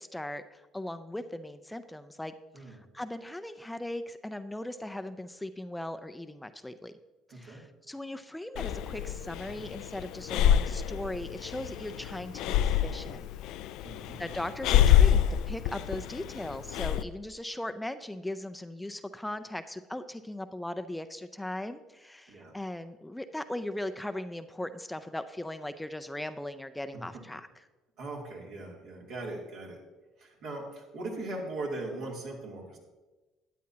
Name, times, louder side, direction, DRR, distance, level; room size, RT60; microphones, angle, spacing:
voice 1, 0.0-6.9 7.3-13.3 14.2-27.5, left 1 dB, 10° left, 10 dB, 0.5 m, -38 dB
voice 2, 7.3-7.6 13.8-14.2 22.3-22.5 27.1-27.2 28.0-29.8 30.2-32.8, right 2 dB, 70° right, -3 dB, 2.8 m, -39 dB
Breathing, 8.6-17.0, left 10 dB, 70° left, 0.3 m, -27 dB
13.0 x 9.2 x 2.8 m, 1.2 s
hypercardioid pair, 65°, 0 cm